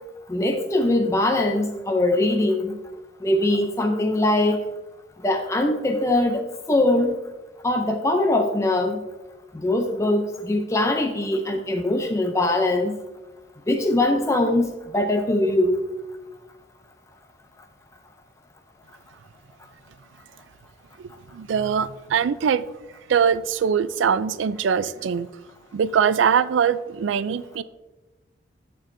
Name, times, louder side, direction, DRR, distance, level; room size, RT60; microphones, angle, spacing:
voice 1, 0.3-2.7 3.2-4.6 5.2-7.2 7.6-9.0 9.6-12.9 13.7-15.8, left 1 dB, 15° left, 3 dB, 0.4 m, -22 dB
voice 2, 21.3-22.6 23.1-25.3 25.7-27.6, right 7 dB, 85° right, 16 dB, 0.3 m, -22 dB
13.0 x 4.4 x 2.6 m, 1.1 s
head